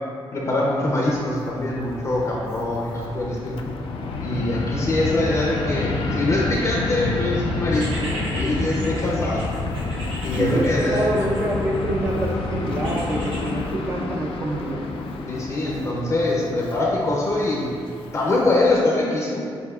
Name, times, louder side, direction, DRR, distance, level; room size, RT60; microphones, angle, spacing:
voice 1, 0.3-3.6 4.2-9.4 10.2-11.3 15.3-17.7 18.1-19.4, left 2 dB, 35° left, -3 dB, 0.5 m, -23 dB
Fixed-wing aircraft airplane, 1.0-18.8, left 3 dB, 90° left, 0.4 m, -29 dB
sound 1, 7.7-11.9 12.8-13.5, right 1 dB, 75° right, 1.1 m, -37 dB
voice 2, 10.4-14.8, right 1 dB, 30° right, -4 dB, 0.4 m, -26 dB
7.7 x 2.7 x 2.3 m, 2.3 s
wide cardioid pair, 145°, 9 cm